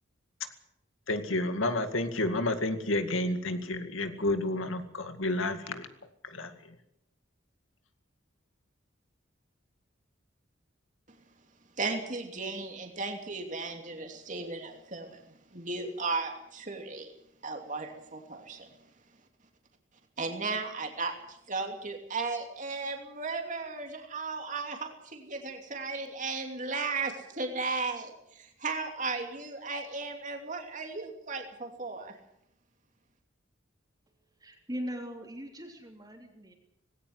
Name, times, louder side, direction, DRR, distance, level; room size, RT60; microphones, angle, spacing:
voice 1, 1.1-5.9 6.2-6.5, left 2 dB, 80° left, 8 dB, 2.2 m, -30 dB
voice 2, 11.8-17.1 17.4-18.7 20.2-32.2, right 3 dB, 40° right, 3 dB, 2.8 m, -35 dB
voice 3, 34.4-36.5, equal, 20° right, 1 dB, 3.3 m, -40 dB
19.5 x 17.5 x 7.9 m, 0.78 s
head